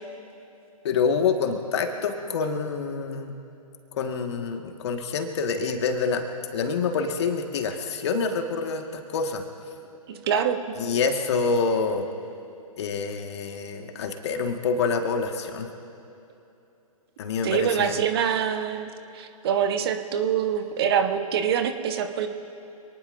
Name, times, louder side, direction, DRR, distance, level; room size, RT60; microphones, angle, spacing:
voice 1, 0.8-3.3 3.9-6.2 6.5-9.4 10.8-12.1 12.8-15.7 17.2-18.0, left 5 dB, 50° left, 4 dB, 1.8 m, -27 dB
voice 2, 10.1-10.6 17.4-18.9 19.1-22.3, right 8 dB, 40° right, 7 dB, 1.2 m, -25 dB
27.0 x 19.5 x 2.7 m, 2.8 s
figure-of-eight pair, 125°, 19 cm